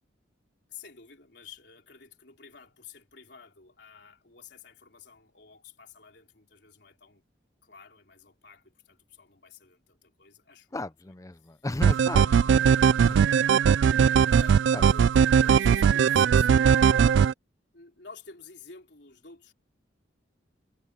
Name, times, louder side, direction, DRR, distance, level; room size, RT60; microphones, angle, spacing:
voice 1, 0.7-7.2 7.6-10.8 11.4-11.7 12.2-12.5 14.3-14.6 14.9-17.1 17.7-19.5, left 5 dB, 60° left, 4.1 m, -50 dB
voice 2, 10.7-12.7 13.1-13.2 14.7-14.8, left 2 dB, 15° left, 0.5 m, -35 dB
sound 1, 11.8-17.3, right 7 dB, 70° right, 0.3 m, -20 dB
head